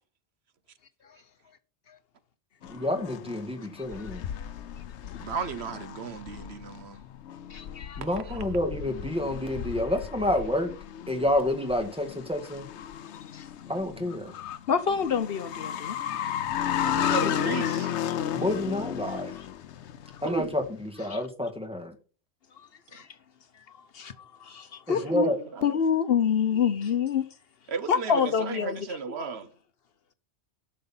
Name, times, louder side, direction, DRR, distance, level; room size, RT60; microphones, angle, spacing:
sound 1, 2.6-20.7, left 10 dB, 90° left, 1.0 m, -34 dB
voice 1, 2.7-4.2 8.0-10.7 11.1-12.7 13.7-14.3 18.3-19.3 20.2-22.0 24.9-25.4, left 1 dB, 5° right, 2.0 m, -29 dB
voice 2, 3.8-4.1 7.5-8.0 13.3-13.5 14.7-16.0 18.1-18.4 19.4-19.5 21.1-21.3 22.6-23.1 23.5-25.3 25.6-27.3 27.9-29.2, left 7 dB, 65° left, 1.0 m, -28 dB
voice 3, 5.2-7.0 8.3-8.4 16.8-17.9 20.2-20.5 24.9-25.8 26.5-26.6 27.7-29.5, right 5 dB, 70° right, 1.1 m, -35 dB
12.0 x 6.8 x 5.5 m
omnidirectional pair, 1.1 m